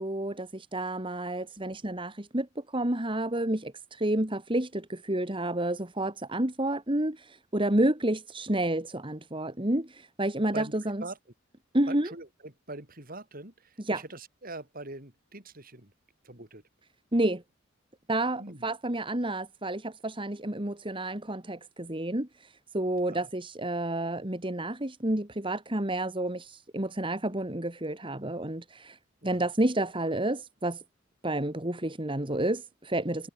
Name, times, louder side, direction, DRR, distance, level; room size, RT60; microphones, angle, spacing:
voice 1, 0.0-11.0 11.7-12.1 13.8-14.0 17.1-17.4 18.1-30.8 31.2-33.3, right 1 dB, 25° right, 2.3 m, -30 dB
voice 2, 11.9-15.9 16.2-16.6 18.4-18.6 23.0-23.3 29.2-29.4, right 2 dB, 45° right, 6.1 m, -43 dB
head